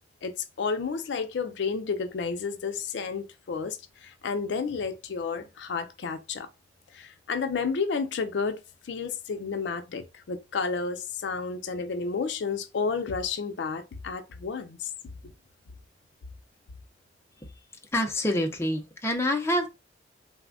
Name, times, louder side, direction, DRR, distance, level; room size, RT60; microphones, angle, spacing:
voice 1, 0.2-6.5 6.9-8.6 8.8-14.9, left 5 dB, 70° left, 0.4 m, -31 dB
voice 2, 17.9-19.7, left 1 dB, 15° left, 0.5 m, -27 dB
3.3 x 2.1 x 2.3 m
head